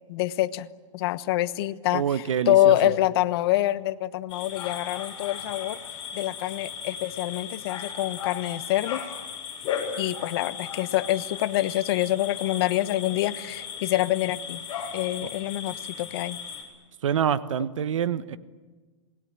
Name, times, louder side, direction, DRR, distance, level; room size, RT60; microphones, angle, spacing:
voice 1, 0.1-0.7 0.9-5.8 6.1-9.0 10.0-14.6 14.9-16.4, left 15 dB, 50° left, 14 dB, 1.1 m, -26 dB
voice 2, 1.9-2.7 17.0-18.4, right 8 dB, 80° right, 13 dB, 1.3 m, -26 dB
sound 1, 4.3-16.6, left 7 dB, 30° left, 7.1 m, -36 dB
27.5 x 20.5 x 9.0 m, 1.3 s
hypercardioid pair, 145°, 16 cm